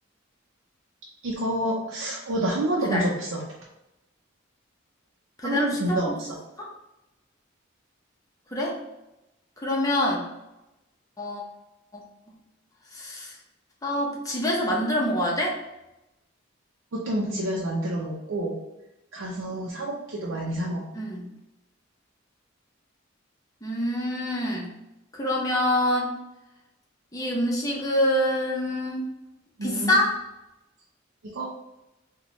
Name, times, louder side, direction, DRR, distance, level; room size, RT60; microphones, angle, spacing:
voice 1, 1.2-3.4 5.4-6.4 16.9-18.6 19.1-21.0 29.6-30.0 31.2-31.4, right 1 dB, 85° right, -4 dB, 0.5 m, -28 dB
voice 2, 5.4-6.2 6.6-6.7 8.5-8.8 9.6-10.3 11.2-11.4 11.9-12.0 12.9-13.4 13.8-15.6 20.9-21.3 23.6-24.7 25.1-26.1 27.1-29.1 29.6-30.2, left 1 dB, 20° left, -2 dB, 0.7 m, -26 dB
4.2 x 2.2 x 3.0 m, 0.95 s
head